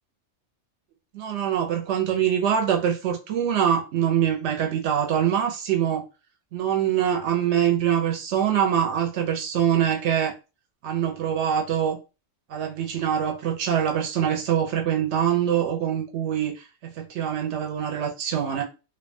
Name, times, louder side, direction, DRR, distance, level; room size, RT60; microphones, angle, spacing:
voice 1, 1.1-6.0 6.5-10.3 10.8-12.0 12.5-18.6, right 9 dB, 70° right, 0.8 m, -24 dB
2.5 x 2.2 x 2.6 m
omnidirectional pair, 1.3 m